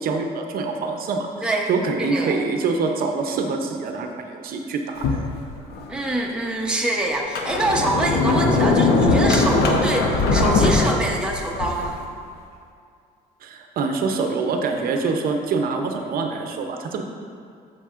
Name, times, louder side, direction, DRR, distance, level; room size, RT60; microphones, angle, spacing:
voice 1, 0.0-5.2 13.4-17.0, right 4 dB, 60° right, 4 dB, 0.6 m, -25 dB
voice 2, 2.0-2.4 5.9-12.0, right 1 dB, 5° right, -1 dB, 0.8 m, -25 dB
Sliding door, 5.0-5.9 6.5-6.6 7.2-12.0, left 3 dB, 70° left, 0.8 m, -20 dB
8.3 x 6.8 x 2.5 m, 2.3 s
cardioid pair, 110°, 17 cm